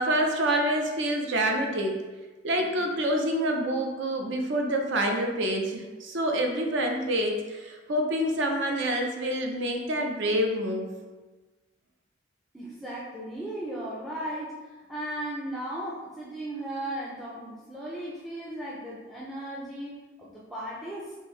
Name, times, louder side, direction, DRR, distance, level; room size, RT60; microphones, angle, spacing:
voice 1, 0.0-2.0 2.4-10.9, right 1 dB, 60° right, 2 dB, 0.5 m, -27 dB
voice 2, 12.5-21.2, right 1 dB, ahead, -6 dB, 0.4 m, -36 dB
3.6 x 2.6 x 3.0 m, 1.3 s
head